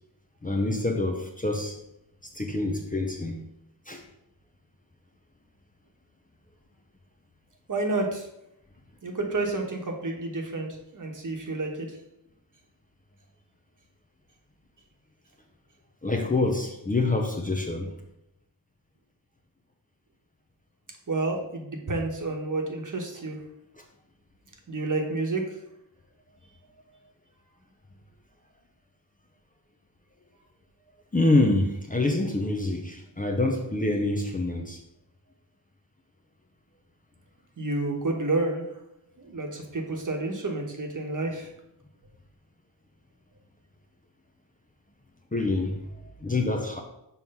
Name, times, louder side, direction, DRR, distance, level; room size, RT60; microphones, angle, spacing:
voice 1, 0.4-1.8 2.3-3.4 3.9-4.0 16.0-17.9 31.1-34.8 45.3-45.8 46.2-46.8, left 2 dB, 20° left, 2 dB, 0.8 m, -26 dB
voice 2, 7.7-8.2 9.0-11.7 21.1-23.4 24.7-25.4 37.6-38.7 39.3-41.5, right 2 dB, 45° right, 2 dB, 1.3 m, -29 dB
5.6 x 3.1 x 5.5 m, 0.83 s
cardioid pair, 75°, 44 cm